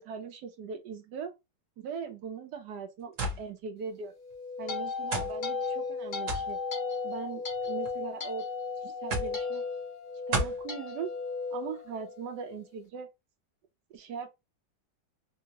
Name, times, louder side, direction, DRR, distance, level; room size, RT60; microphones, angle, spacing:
voice 1, 0.0-1.3 1.8-4.1 4.6-6.6 7.0-8.4 8.8-9.6 10.3-11.1 11.5-13.1 13.9-14.3, right 6 dB, 70° right, 1.1 m, -40 dB
sound 1, 3.2-3.4 4.3-4.4 5.1-5.3 6.3-6.5 7.5-7.9 9.1-9.4 10.3-10.6, right 2 dB, 50° right, 1.3 m, -31 dB
sound 2, 4.2-12.5, left 4 dB, 65° left, 0.5 m, -35 dB
3.5 x 2.8 x 2.8 m
omnidirectional pair, 2.0 m